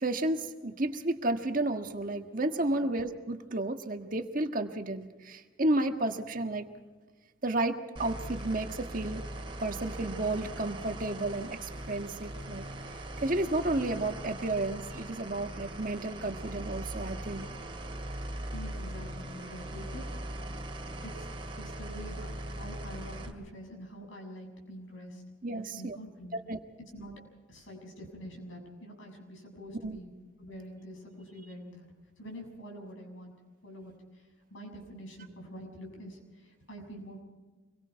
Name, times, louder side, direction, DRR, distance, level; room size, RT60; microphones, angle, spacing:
voice 1, 0.0-6.7 7.4-9.2 9.6-12.7 13.2-17.5 25.4-26.0 26.5-26.6 29.8-30.0, right 2 dB, 45° right, 6 dB, 1.5 m, -32 dB
sound 1, 8.0-23.3, right 1 dB, 25° right, 2.4 m, -40 dB
voice 2, 18.5-20.0 21.0-21.3 21.6-25.2 25.5-26.4 26.9-27.1 27.5-30.1 30.4-31.9 32.2-33.3 33.6-33.9 34.5-37.2, equal, 80° left, 2 dB, 7.1 m, -46 dB
26.0 x 22.5 x 4.7 m, 1.3 s
head